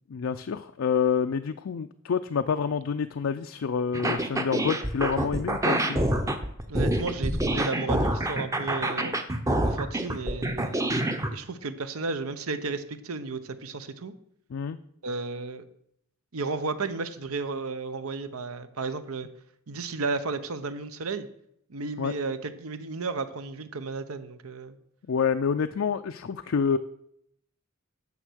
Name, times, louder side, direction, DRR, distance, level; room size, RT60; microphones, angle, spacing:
voice 1, 0.1-6.1 14.5-14.8 22.0-22.1 25.1-26.8, left 6 dB, 65° left, 8 dB, 0.4 m, -28 dB
sound 1, 3.9-11.3, right 1 dB, 15° right, 0.7 m, -27 dB
voice 2, 6.7-9.2 9.6-10.9 11.3-14.1 15.0-15.7 16.3-19.3 19.7-21.3 21.7-24.8, right 4 dB, 80° right, 11 dB, 0.8 m, -33 dB
9.6 x 6.5 x 6.3 m, 0.74 s
head